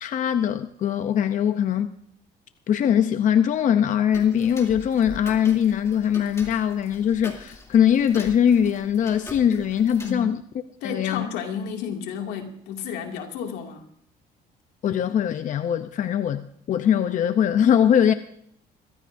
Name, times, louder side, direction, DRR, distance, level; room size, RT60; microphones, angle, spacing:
voice 1, 0.0-1.9 2.7-10.4 10.8-11.3 14.8-18.1, left 9 dB, 50° left, 0.7 m, -21 dB
Tick-tock, 4.1-10.1, left 2 dB, 15° left, 2.7 m, -43 dB
voice 2, 10.8-13.8, left 7 dB, 90° left, 2.4 m, -32 dB
23.0 x 15.0 x 2.6 m
cardioid pair, 110°, 17 cm